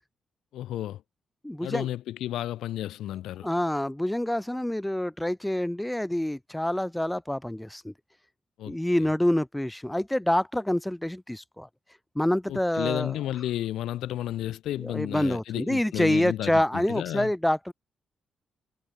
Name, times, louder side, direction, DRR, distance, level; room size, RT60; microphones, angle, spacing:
voice 1, 0.5-1.0 1.6-3.5 8.6-8.8 12.5-17.3, left 13 dB, 85° left, 2.6 m, -32 dB
voice 2, 1.4-1.9 3.4-7.9 8.7-11.7 12.2-13.2 14.8-17.7, left 1 dB, 5° left, 1.9 m, -27 dB
cardioid pair, 75°, 0 cm